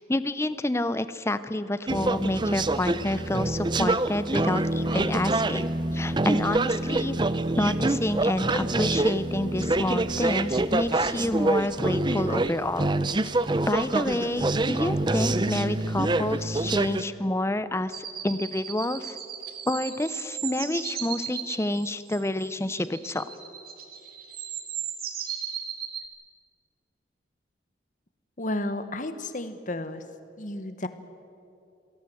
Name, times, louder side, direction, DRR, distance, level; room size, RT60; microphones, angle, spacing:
voice 1, 0.1-5.6 5.9-7.2 7.6-12.9 13.7-19.2 19.7-23.3, left 1 dB, 15° left, 13 dB, 0.7 m, -28 dB
sound 1, 1.9-17.0, right 2 dB, 25° right, 0.6 m, -26 dB
sound 2, 17.9-26.0, right 9 dB, 50° right, 2.0 m, -36 dB
voice 2, 28.4-30.0 30.4-30.9, left 1 dB, 45° left, 10 dB, 1.3 m, -32 dB
27.0 x 18.0 x 7.9 m, 2.7 s
head